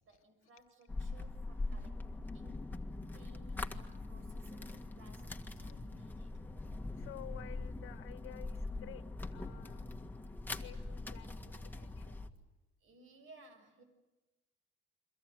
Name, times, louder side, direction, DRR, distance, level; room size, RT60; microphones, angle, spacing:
voice 1, 0.0-2.0 2.3-2.7 3.1-6.4 12.8-13.8, right 2 dB, 80° right, 7 dB, 7.0 m, -61 dB
sound 1, 0.9-12.3, left 2 dB, 10° left, 1.8 m, -42 dB
voice 2, 6.9-9.1 9.3-9.9 10.6-12.2, left 12 dB, 85° left, 9 dB, 1.8 m, -52 dB
30.0 x 23.5 x 7.8 m, 1.1 s
cardioid pair, 120°, 21 cm